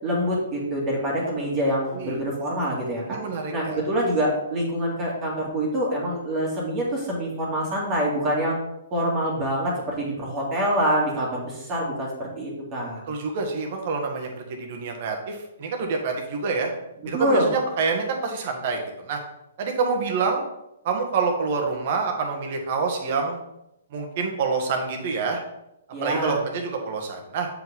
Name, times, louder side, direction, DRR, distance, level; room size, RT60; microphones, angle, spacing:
voice 1, 0.0-3.2 3.5-8.5 8.9-13.0 17.1-17.5 25.9-26.4, equal, 25° right, -4 dB, 2.0 m, -25 dB
voice 2, 3.1-3.8 13.1-16.7 17.1-19.2 19.6-20.4 20.8-23.4 23.9-25.4 26.0-27.5, right 4 dB, 50° right, 3 dB, 1.6 m, -27 dB
7.5 x 5.0 x 3.7 m, 0.85 s
hypercardioid pair, 135°, 0 cm